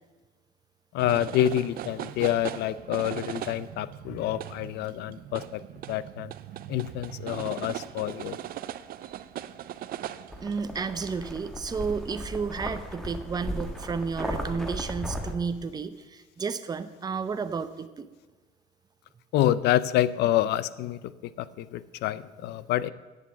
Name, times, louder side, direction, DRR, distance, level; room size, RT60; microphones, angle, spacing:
voice 1, 0.9-5.6 5.9-6.3 6.7-8.4 19.3-21.0 21.4-22.9, left 13 dB, 80° left, 17 dB, 0.5 m, -27 dB
sound 1, 1.0-10.8, right 12 dB, 60° right, 0.5 m, -39 dB
sound 2, 10.3-15.3, equal, ahead, 1.4 m, -36 dB
voice 2, 10.4-18.1, right 5 dB, 25° right, 11 dB, 0.6 m, -32 dB
8.2 x 7.1 x 8.2 m, 1.3 s
cardioid pair, 110°, 17 cm